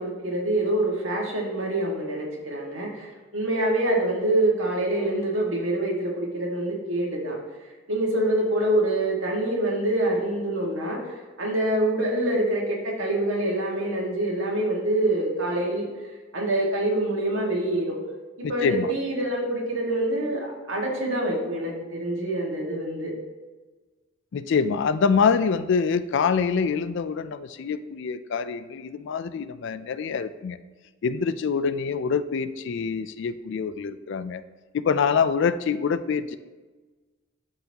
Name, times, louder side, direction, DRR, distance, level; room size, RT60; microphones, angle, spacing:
voice 1, 0.0-7.3 7.9-15.9 16.3-17.9 18.4-23.1, right 1 dB, 75° right, -2 dB, 1.8 m, -26 dB
voice 2, 18.4-18.9 24.3-30.6 31.0-34.4 34.7-36.4, left 5 dB, 65° left, 13 dB, 0.4 m, -25 dB
12.0 x 4.1 x 2.8 m, 1.3 s
head